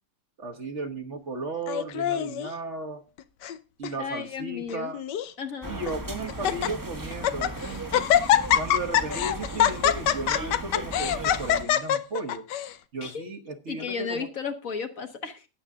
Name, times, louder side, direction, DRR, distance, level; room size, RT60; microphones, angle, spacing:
voice 1, 0.4-3.0 3.8-5.0 5.7-8.1 8.5-12.4 12.9-14.3, right 2 dB, 45° right, 5 dB, 1.4 m, -35 dB
Laughter, 1.7-2.5 3.2-3.6 3.8-3.9 4.7-5.3 5.9-6.0 6.3-6.7 7.1-7.5 7.9-12.7, left 10 dB, 90° left, 1.4 m, -24 dB
voice 2, 4.0-4.9 5.4-5.8 13.0-13.3 13.7-15.5, left 6 dB, 55° left, 7 dB, 1.5 m, -34 dB
sound 1, 5.6-11.6, right 2 dB, 15° right, 1.1 m, -37 dB
18.5 x 7.2 x 3.6 m, 0.30 s
omnidirectional pair, 1.8 m